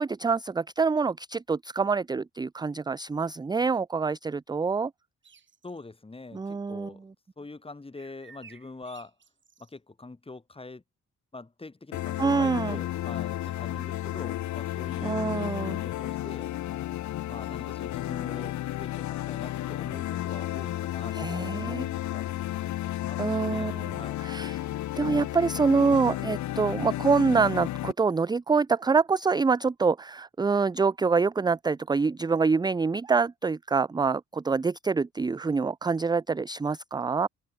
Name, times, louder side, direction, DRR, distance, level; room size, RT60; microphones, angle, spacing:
voice 1, 0.0-4.9 6.3-6.9 12.2-12.8 15.0-15.8 21.1-21.8 23.2-23.9 24.2-24.6 25.0-37.3, right 4 dB, 15° right, 0.5 m, -26 dB
sound 1, 5.2-5.8 7.9-9.7, right 6 dB, 40° right, 3.9 m, -54 dB
voice 2, 5.6-7.0 7.4-9.1 9.6-10.8 11.3-15.4 15.8-16.5 17.3-21.8 22.1-22.6 23.0-24.2, left 3 dB, 20° left, 3.3 m, -44 dB
sound 2, 11.9-27.9, left 14 dB, 70° left, 0.8 m, -32 dB
open air
cardioid pair, 90°, 30 cm